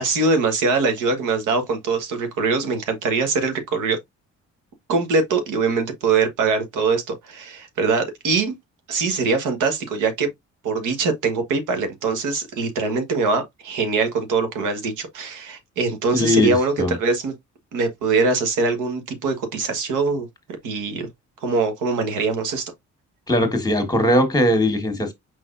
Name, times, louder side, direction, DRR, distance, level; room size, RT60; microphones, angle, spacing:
voice 1, 0.0-4.0 4.9-8.5 8.9-10.3 10.6-17.3 17.7-20.3 20.6-21.1 21.4-22.7, right 4 dB, 85° right, 1.4 m, -22 dB
voice 2, 16.1-16.9 23.3-25.1, left 1 dB, 15° left, 1.6 m, -20 dB
4.7 x 4.1 x 2.6 m
cardioid pair, 90°, 30 cm